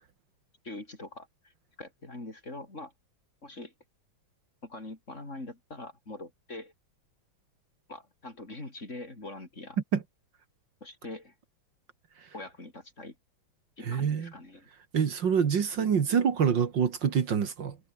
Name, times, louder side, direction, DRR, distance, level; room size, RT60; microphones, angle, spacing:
voice 1, 0.6-1.5 1.8-2.9 3.4-3.7 4.6-6.7 7.9-9.8 10.8-11.3 12.3-13.2 13.8-14.7, left 2 dB, 35° left, 5.0 m, -43 dB
voice 2, 13.9-14.3 14.9-17.8, right 7 dB, 65° right, 2.4 m, -26 dB
omnidirectional pair, 2.2 m